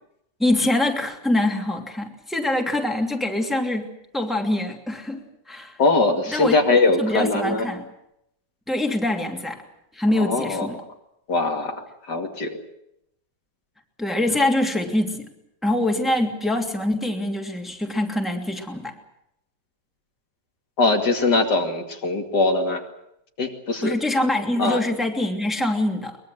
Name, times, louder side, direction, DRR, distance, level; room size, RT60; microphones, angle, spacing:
voice 1, 0.4-3.9 4.1-5.8 6.3-6.6 7.0-7.8 8.7-9.6 9.9-10.8 14.0-15.3 15.6-18.9 23.8-26.2, left 1 dB, ahead, 2 dB, 2.6 m, -24 dB
voice 2, 5.8-7.6 10.2-10.7 11.3-12.6 20.8-22.8 23.4-23.9 24.6-24.8, left 3 dB, 65° left, 3 dB, 3.1 m, -21 dB
23.0 x 22.0 x 7.8 m, 0.79 s
omnidirectional pair, 1.9 m